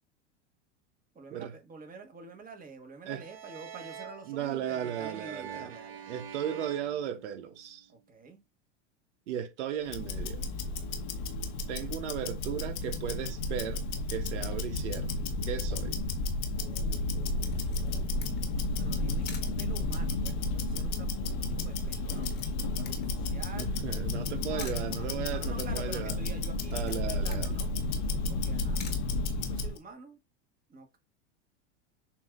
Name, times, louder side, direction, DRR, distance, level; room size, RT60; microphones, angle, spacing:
voice 1, 1.1-6.1 7.9-8.4 16.5-17.6 18.8-22.3 22.6-23.7 24.4-27.7 28.3-28.8 29.3-30.2 30.7-31.0, right 4 dB, 25° right, 1.5 m, -48 dB
sound 1, 3.2-7.8, right 8 dB, 40° right, 1.4 m, -45 dB
voice 2, 4.3-5.7 6.1-7.9 9.3-10.4 11.7-13.8 14.1-15.1 15.5-16.0 23.5-26.1 26.7-27.5, right 9 dB, 80° right, 1.0 m, -36 dB
Tick-tock, 9.8-29.8, left 2 dB, 70° left, 1.3 m, -32 dB
Camera, 17.4-29.9, left 6 dB, 30° left, 1.3 m, -53 dB
7.1 x 2.8 x 2.5 m
hypercardioid pair, 105°, 36 cm